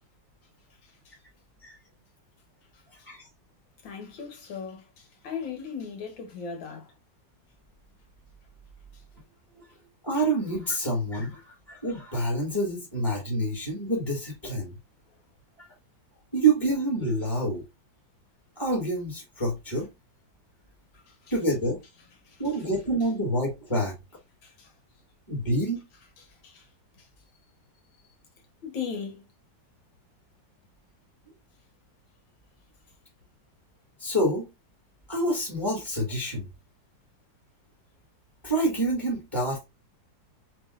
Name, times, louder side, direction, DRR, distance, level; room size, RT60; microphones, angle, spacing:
voice 1, 0.8-1.1 3.8-6.9 21.1-21.2 22.3-22.4 24.4-24.7 26.4-26.7 27.0-27.1 28.6-29.3, left 6 dB, 85° left, 2.0 m, -38 dB
voice 2, 10.0-14.8 15.6-15.7 16.3-17.6 18.6-19.9 21.3-21.8 22.4-23.9 25.3-25.8 34.0-34.5 35.1-36.5 38.4-39.6, right 1 dB, 15° left, 1.4 m, -27 dB
7.3 x 2.6 x 2.5 m
omnidirectional pair, 2.0 m